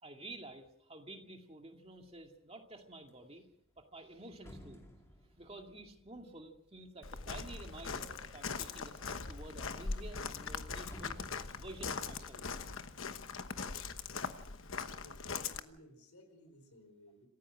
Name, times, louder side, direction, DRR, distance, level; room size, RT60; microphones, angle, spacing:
voice 1, 0.0-3.4 3.8-4.8 5.4-11.2 11.6-12.5, right 2 dB, 25° right, 3 dB, 2.2 m, -51 dB
sound 1, 2.0-2.4 2.7-8.1 8.7-9.4 9.7-9.8 10.1-14.0 14.4-15.0, equal, 15° left, 2.6 m, -59 dB
Walk footsteps, 7.0-15.6, left 4 dB, 70° left, 1.1 m, -41 dB
voice 2, 15.0-17.3, equal, 90° left, 9 dB, 4.7 m, -59 dB
27.5 x 15.5 x 6.3 m, 0.78 s
head